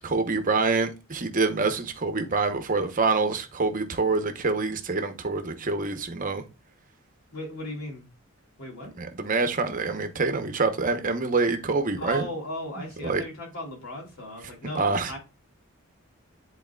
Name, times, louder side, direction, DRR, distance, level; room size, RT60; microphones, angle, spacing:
voice 1, 0.0-6.4 8.9-12.3 13.0-13.2 14.7-15.1, right 3 dB, 40° right, 0.9 m, -26 dB
voice 2, 7.3-8.1 8.6-8.9 12.0-15.2, equal, 70° left, 3.0 m, -36 dB
10.5 x 4.1 x 2.3 m
head